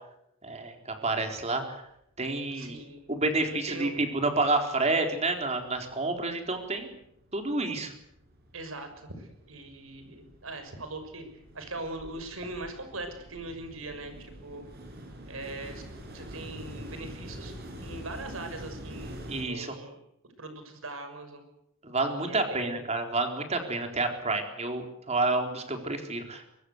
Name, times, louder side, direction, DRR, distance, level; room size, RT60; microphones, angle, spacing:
voice 1, 0.4-1.8 2.2-2.8 3.1-6.9 7.3-7.9 19.3-19.7 21.8-26.4, right 2 dB, 30° right, 5 dB, 4.1 m, -29 dB
voice 2, 2.5-3.1 3.7-4.0 8.5-11.2 11.5-14.6 15.2-19.1 19.5-20.0 20.4-21.4 22.1-22.8, right 2 dB, 80° right, 7 dB, 6.3 m, -41 dB
sound 1, 2.8-2.9 3.2-4.1 4.5-19.4, equal, 50° right, 7.4 m, -46 dB
23.5 x 23.0 x 8.1 m, 0.79 s
head